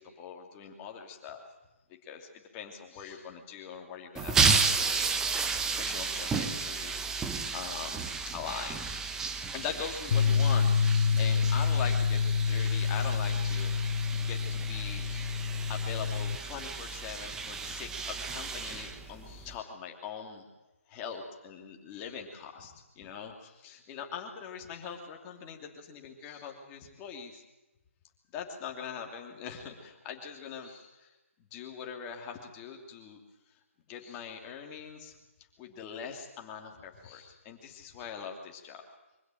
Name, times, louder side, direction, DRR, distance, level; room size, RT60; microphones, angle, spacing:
voice 1, 0.0-1.4 2.0-9.1 9.5-20.5 20.9-27.4 28.3-31.1 31.4-33.2 33.5-33.6 33.9-35.2 35.6-38.8, left 7 dB, 20° left, 3 dB, 2.8 m, -42 dB
sound 1, 4.2-19.6, right 5 dB, 5° right, 0.9 m, -33 dB
Bass guitar, 10.1-16.4, left 6 dB, 40° left, 0.7 m, -27 dB
24.5 x 16.0 x 9.2 m, 1.0 s
hypercardioid pair, 160°, 7 cm